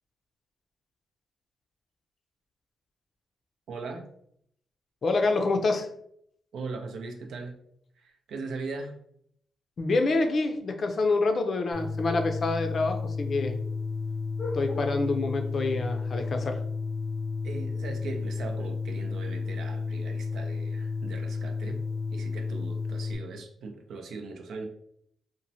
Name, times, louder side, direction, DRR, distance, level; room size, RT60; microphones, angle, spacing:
voice 1, 3.7-4.1 6.5-7.6 8.0-9.0 17.4-21.8 22.1-24.6, right 3 dB, 75° right, 3 dB, 0.5 m, -39 dB
voice 2, 5.0-5.9 9.8-13.5 14.4-16.6, left 3 dB, 55° left, 5 dB, 0.4 m, -27 dB
sound 1, 11.7-23.1, left 4 dB, 40° right, 0.8 m, -32 dB
3.0 x 2.1 x 2.7 m, 0.70 s
cardioid pair, 70°, 0 cm